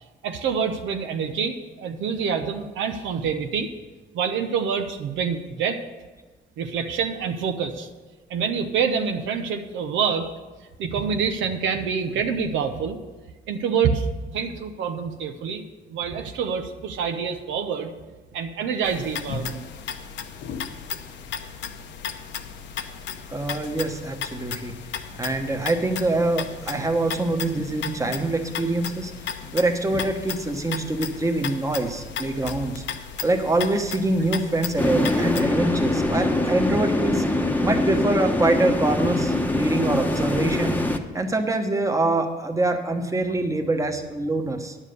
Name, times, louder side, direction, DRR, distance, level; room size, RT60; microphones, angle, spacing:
voice 1, 0.2-3.7 4.1-5.8 6.6-7.9 8.3-10.3 10.8-13.0 13.5-15.6 15.9-17.9 18.3-19.6, right 6 dB, 80° right, 6 dB, 0.9 m, -26 dB
sound 1, 18.8-35.4, left 7 dB, 70° left, 0.8 m, -35 dB
voice 2, 23.3-24.8 25.1-29.1 29.5-32.8 33.2-37.2 37.6-40.8 41.1-44.8, right 2 dB, 15° right, 4 dB, 1.2 m, -24 dB
sound 2, 34.8-41.0, left 1 dB, 10° left, 1.0 m, -23 dB
10.0 x 7.3 x 6.8 m, 1.2 s
cardioid pair, 90°, 19 cm